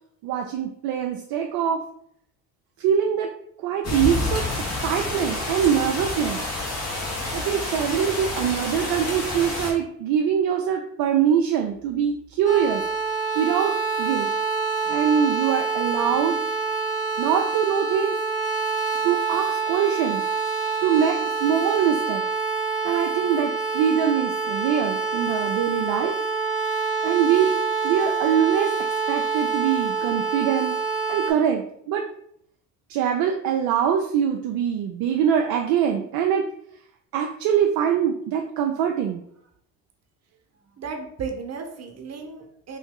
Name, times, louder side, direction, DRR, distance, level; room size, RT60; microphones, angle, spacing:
voice 1, 0.2-1.8 2.8-3.3 3.6-4.5 4.8-6.4 7.3-12.8 13.4-14.3 14.9-16.4 17.2-18.2 19.0-20.2 20.8-22.2 22.8-26.2 27.0-27.5 27.8-28.7 29.1-30.8 31.1-32.0 32.9-36.5 37.1-39.2, right 8 dB, 60° right, 2 dB, 0.5 m, -23 dB
sound 1, 3.8-9.7, left 2 dB, 40° left, 1.5 m, -29 dB
sound 2, 12.4-31.3, right 5 dB, 20° left, 1.2 m, -26 dB
voice 2, 40.8-42.8, right 5 dB, 40° right, 3 dB, 1.0 m, -34 dB
3.0 x 2.6 x 3.7 m, 0.69 s
hypercardioid pair, 60°, 40 cm